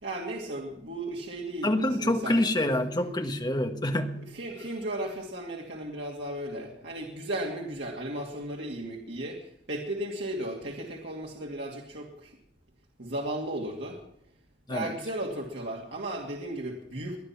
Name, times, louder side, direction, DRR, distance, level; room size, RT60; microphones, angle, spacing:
voice 1, 0.0-2.4 2.9-3.0 4.3-12.4 13.0-14.0 14.7-17.2, right 1 dB, 80° right, -2 dB, 2.6 m, -35 dB
voice 2, 1.6-4.3 14.7-14.9, left 1 dB, 25° left, 6 dB, 1.4 m, -27 dB
21.5 x 10.5 x 5.9 m, 0.80 s
head